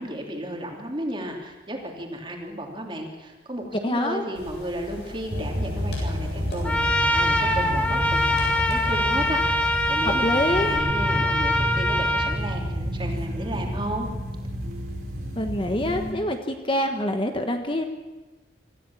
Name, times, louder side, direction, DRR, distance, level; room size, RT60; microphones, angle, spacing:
voice 1, 0.0-14.1, right 1 dB, 25° right, 1 dB, 3.1 m, -34 dB
voice 2, 3.8-4.2 10.2-10.7 15.3-17.8, left 1 dB, 30° left, 5 dB, 1.3 m, -25 dB
sound 1, 4.3-10.7, left 1 dB, 65° left, 7.8 m, -41 dB
sound 2, 5.3-16.1, equal, 55° right, 3.5 m, -30 dB
Trumpet, 6.6-12.3, left 1 dB, 5° left, 1.5 m, -23 dB
26.0 x 14.5 x 7.3 m, 1.2 s
head